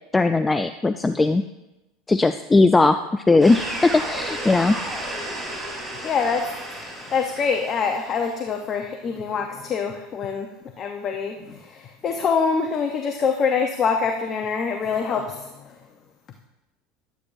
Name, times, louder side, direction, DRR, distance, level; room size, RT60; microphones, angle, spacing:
voice 1, 0.1-1.4 2.1-4.8, left 3 dB, 15° left, 10 dB, 0.3 m, -18 dB
sound 1, 3.4-8.4, right 1 dB, 5° right, 3.5 m, -33 dB
voice 2, 6.0-10.5 10.8-15.8, left 5 dB, 35° left, 3 dB, 0.8 m, -25 dB
11.5 x 9.1 x 2.6 m, 0.98 s
supercardioid pair, 110°, 0 cm